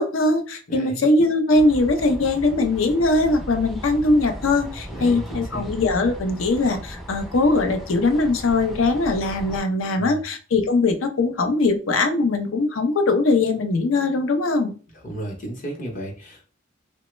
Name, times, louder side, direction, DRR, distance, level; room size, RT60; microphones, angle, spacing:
voice 1, 0.0-14.7, left 2 dB, 80° left, 6 dB, 0.5 m, -21 dB
voice 2, 0.7-1.0 4.9-5.7 10.0-10.2 15.0-16.5, right 1 dB, 40° left, 0 dB, 0.7 m, -33 dB
sound 1, 1.5-9.6, equal, ahead, 0.3 m, -36 dB
3.0 x 2.0 x 3.0 m, 0.38 s
head